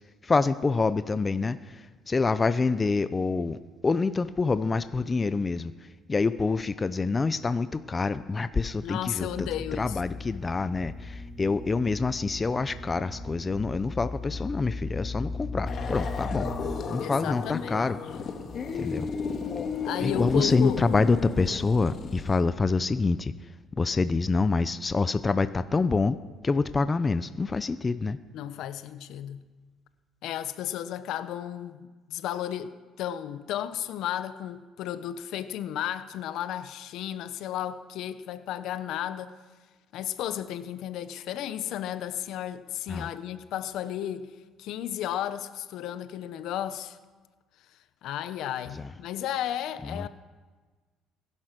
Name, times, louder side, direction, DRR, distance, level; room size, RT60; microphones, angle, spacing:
voice 1, 0.2-5.7 6.1-16.5 16.9-18.0 18.8-19.1 20.0-23.3 23.8-26.2 26.4-28.2 42.9-43.1 48.8-48.9 49.8-50.1, left 4 dB, 25° left, 0.6 m, -26 dB
voice 2, 8.8-10.2 16.9-17.9 19.8-20.8 28.3-29.4 30.2-39.3 39.9-44.3 44.6-47.0 48.0-50.1, left 11 dB, 70° left, 0.9 m, -33 dB
sound 1, 9.2-16.8, left 2 dB, 25° right, 2.4 m, -37 dB
sound 2, 15.7-22.4, left 5 dB, 45° left, 1.8 m, -33 dB
21.0 x 11.0 x 6.1 m
cardioid pair, 100°, 0 cm